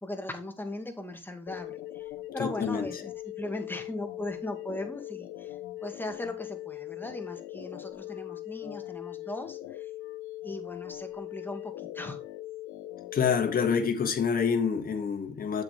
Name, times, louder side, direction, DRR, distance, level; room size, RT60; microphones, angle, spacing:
voice 1, 0.0-3.1 3.4-9.9 10.4-12.2, left 1 dB, 10° left, 2.1 m, -39 dB
sound 1, 1.5-13.9, left 15 dB, 90° left, 0.9 m, -40 dB
voice 2, 2.4-2.9 13.1-15.6, left 6 dB, 45° left, 1.6 m, -27 dB
7.9 x 7.4 x 3.5 m
cardioid pair, 90°, 20 cm